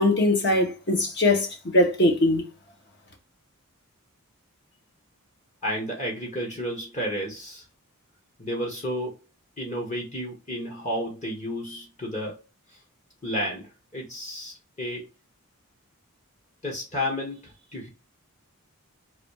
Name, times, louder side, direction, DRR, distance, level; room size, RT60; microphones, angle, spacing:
voice 1, 0.0-1.5 1.7-2.5, left 1 dB, 50° left, 1.4 m, -21 dB
voice 2, 5.6-7.6 8.4-9.2 9.6-12.4 12.7-12.8 13.2-15.1 16.6-17.9, equal, 30° left, 1.3 m, -32 dB
4.0 x 2.7 x 4.8 m
head